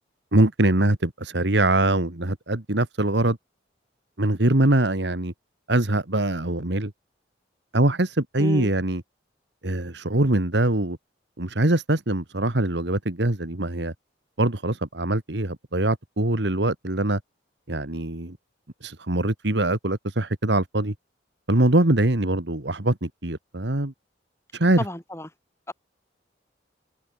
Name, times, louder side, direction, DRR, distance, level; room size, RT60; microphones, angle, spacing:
voice 1, 0.3-3.4 4.2-5.3 5.7-6.9 7.7-9.0 9.6-11.0 11.4-13.9 14.4-17.2 17.7-18.4 18.8-20.9 21.5-23.9 24.5-24.8, right 1 dB, 70° right, 1.9 m, -23 dB
voice 2, 8.4-8.7 24.8-25.3 25.7-25.8, left 1 dB, 15° left, 4.7 m, -31 dB
head